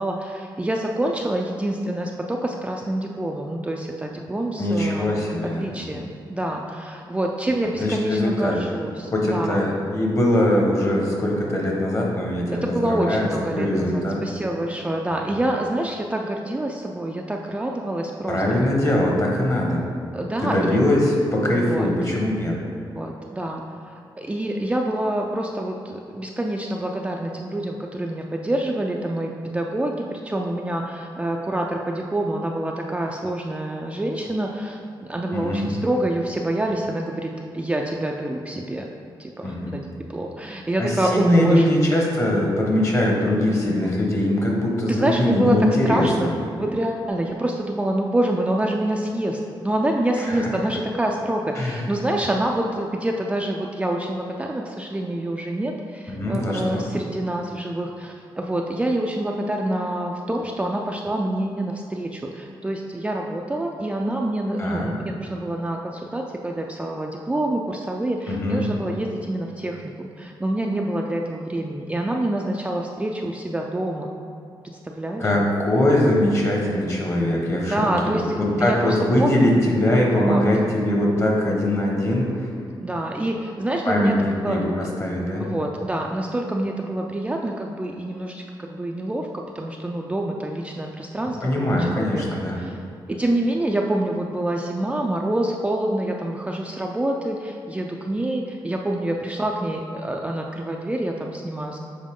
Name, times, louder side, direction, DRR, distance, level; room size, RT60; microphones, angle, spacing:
voice 1, 0.0-5.1 5.6-9.6 12.6-18.4 20.1-20.8 21.5-21.9 23.0-38.9 39.2-41.7 44.9-45.6 45.8-74.1 74.8-75.3 77.7-79.5 80.0-80.4 82.8-84.2 84.4-84.6 85.4-92.2 92.5-92.8 93.1-101.8, right 1 dB, 15° right, 0 dB, 0.4 m, -26 dB
voice 2, 4.6-5.7 7.8-8.6 9.1-13.3 13.5-14.2 15.2-15.3 18.3-19.9 20.4-22.6 35.3-35.7 39.4-39.8 40.8-46.3 50.2-50.5 51.6-51.8 56.1-56.8 64.6-64.9 68.3-68.6 75.2-82.5 83.8-85.5 91.4-92.6, left 1 dB, 35° left, -2 dB, 1.3 m, -21 dB
7.3 x 4.6 x 3.7 m, 2.5 s
wide cardioid pair, 115°, 9 cm